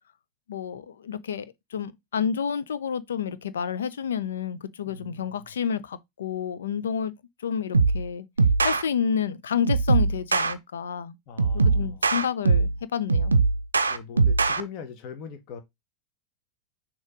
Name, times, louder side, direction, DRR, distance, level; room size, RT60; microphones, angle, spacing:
voice 1, 0.5-1.5 1.7-7.1 7.4-8.3 8.6-11.1 11.5-13.4, left 7 dB, 65° left, 0.6 m, -29 dB
voice 2, 4.9-5.4 11.3-12.0 13.9-15.6, left 6 dB, 40° left, 1.0 m, -41 dB
sound 1, 7.7-8.0 8.4-8.8 9.7-10.5 11.4-12.8 13.1-14.6, right 4 dB, 75° right, 0.5 m, -21 dB
6.4 x 3.0 x 4.9 m
figure-of-eight pair, 90°, 0 cm